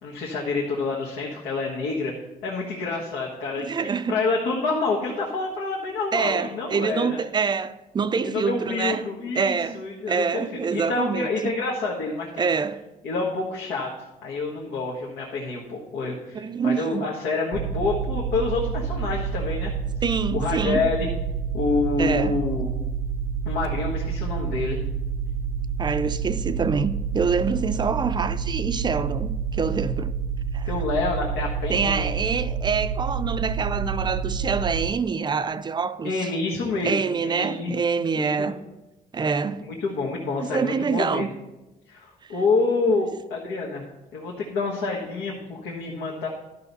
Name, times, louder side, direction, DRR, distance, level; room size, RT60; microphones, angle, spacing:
voice 1, 0.0-2.1 2.4-3.6 4.1-7.2 8.2-12.3 13.0-13.9 14.2-19.7 20.3-21.1 21.5-22.7 23.4-24.8 30.6-32.1 36.0-37.0 37.2-37.8 38.1-38.5 39.7-41.3 41.9-43.8 44.1-46.3, left 3 dB, 85° left, 1.5 m, -27 dB
voice 2, 3.6-4.2 6.1-9.1 9.3-11.5 12.4-12.8 16.3-17.1 20.0-20.8 22.0-22.4 25.8-30.1 30.5-30.7 31.7-36.1 36.8-38.6 39.1-39.7 40.4-41.3 42.2-42.3 42.9-43.0, right 5 dB, 25° right, 0.4 m, -26 dB
sound 1, 17.5-34.9, right 6 dB, 80° right, 0.7 m, -28 dB
12.5 x 5.8 x 4.1 m
cardioid pair, 110°, 17 cm